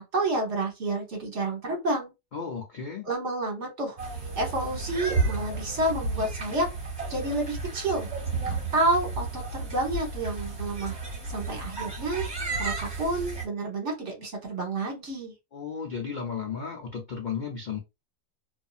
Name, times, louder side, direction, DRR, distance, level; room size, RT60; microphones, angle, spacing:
voice 1, 0.0-2.1 3.0-4.0 4.3-6.7 7.1-8.1 8.4-11.0 11.3-12.2 12.6-15.3, right 2 dB, 55° right, 1.3 m, -29 dB
voice 2, 2.3-3.1 15.5-17.8, left 6 dB, 60° left, 0.5 m, -34 dB
sound 1, 4.0-13.5, right 3 dB, 30° right, 1.3 m, -32 dB
2.7 x 2.6 x 2.4 m
omnidirectional pair, 1.5 m